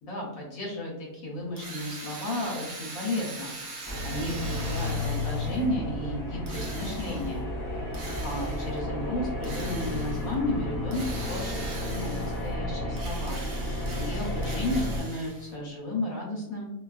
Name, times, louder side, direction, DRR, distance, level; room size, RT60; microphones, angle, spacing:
voice 1, 0.0-7.5 7.8-7.9 8.2-13.4 13.9-16.7, left 1 dB, 75° left, -3 dB, 1.1 m, -33 dB
Drill, 1.6-5.7 6.5-7.4 7.9-8.8 9.4-10.3 10.9-12.5 12.9-15.5, right 3 dB, 65° right, 0.6 m, -42 dB
sound 1, 3.8-15.0, left 1 dB, 20° left, 0.6 m, -32 dB
2.6 x 2.3 x 2.3 m, 0.99 s
omnidirectional pair, 1.5 m